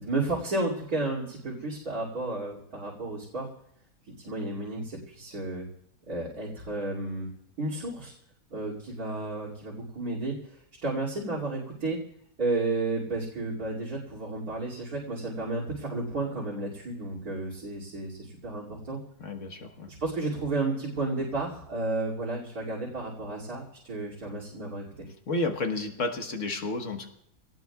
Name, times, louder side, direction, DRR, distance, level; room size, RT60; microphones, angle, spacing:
voice 1, 0.0-3.5 4.2-5.7 6.1-7.3 7.6-8.1 8.5-12.0 12.4-19.0 20.0-25.1, right 2 dB, 70° right, -7 dB, 3.2 m, -32 dB
voice 2, 19.2-19.9 25.3-27.1, left 2 dB, 55° left, 4 dB, 1.7 m, -31 dB
25.5 x 18.5 x 2.4 m, 0.70 s
omnidirectional pair, 1.6 m